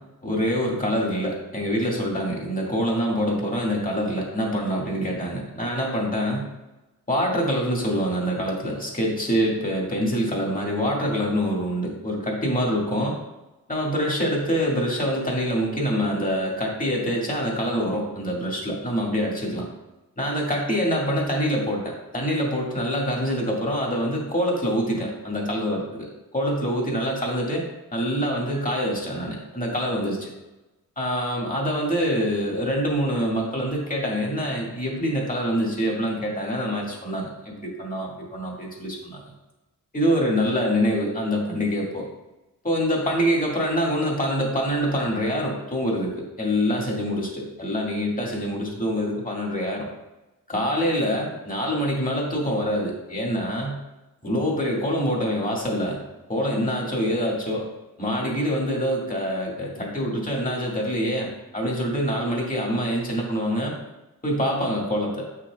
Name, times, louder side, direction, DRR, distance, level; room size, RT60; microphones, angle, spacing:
voice 1, 0.2-6.4 7.1-13.1 13.7-19.6 20.2-26.1 26.3-30.3 31.0-39.2 39.9-42.1 42.6-49.9 50.5-53.8 54.2-56.0 56.3-57.7 58.0-63.7 64.2-65.3, equal, 25° left, -2 dB, 2.2 m, -25 dB
8.1 x 5.9 x 2.4 m, 1.0 s
cardioid pair, 70°, 33 cm